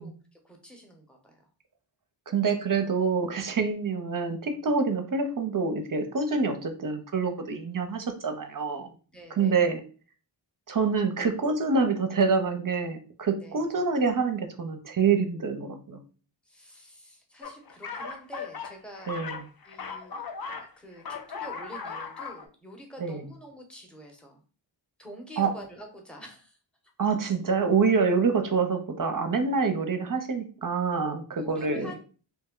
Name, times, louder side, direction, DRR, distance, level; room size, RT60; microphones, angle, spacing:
voice 1, 0.0-1.5 9.1-9.6 13.4-13.6 16.5-19.1 19.7-20.2 20.6-24.4 25.0-26.6 31.3-32.0, equal, ahead, 2 dB, 0.7 m, -47 dB
voice 2, 2.3-8.9 9.3-9.8 10.7-16.0 19.1-19.4 23.0-23.2 25.4-25.5 27.0-31.9, right 5 dB, 45° right, 6 dB, 0.5 m, -26 dB
sound 1, 17.4-20.7 21.0-22.5, left 5 dB, 50° left, 0.5 m, -38 dB
2.8 x 2.1 x 3.6 m, 0.37 s
wide cardioid pair, 65°, 48 cm